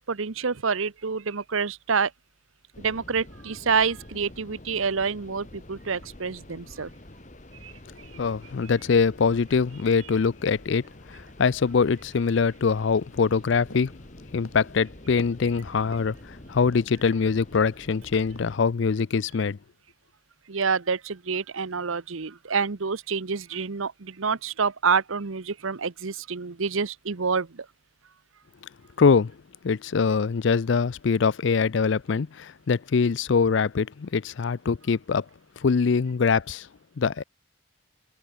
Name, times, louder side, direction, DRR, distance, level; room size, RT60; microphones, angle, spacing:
voice 1, 0.0-2.1 2.8-6.9 7.6-7.7 8.6-8.7 20.5-27.7, right 5 dB, 75° right, 0.9 m, -27 dB
sound 1, 2.7-18.6, left 1 dB, 35° left, 1.9 m, -47 dB
voice 2, 8.1-13.9 14.3-19.6 29.0-29.3 29.6-35.2 35.6-36.7 37.0-37.2, left 5 dB, 60° left, 0.4 m, -23 dB
sound 2, 12.9-17.2 17.5-18.0 18.3-18.6, left 2 dB, 85° left, 4.6 m, -48 dB
head